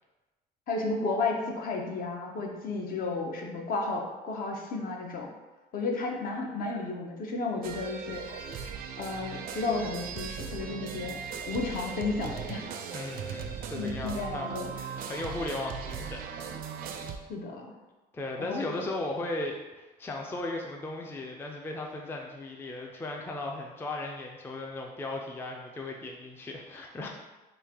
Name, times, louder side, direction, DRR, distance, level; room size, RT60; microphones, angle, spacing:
voice 1, 0.7-5.3 5.7-11.2 11.5-12.6 13.7-14.7 17.3-17.7 18.4-18.7, left 3 dB, 55° left, 1 dB, 0.7 m, -33 dB
sound 1, 7.6-17.2, right 7 dB, 60° right, 0.4 m, -38 dB
voice 2, 12.9-16.5 18.1-27.1, left 2 dB, 15° left, 0 dB, 0.3 m, -37 dB
3.2 x 2.5 x 3.5 m, 1.1 s
cardioid pair, 110°, 17 cm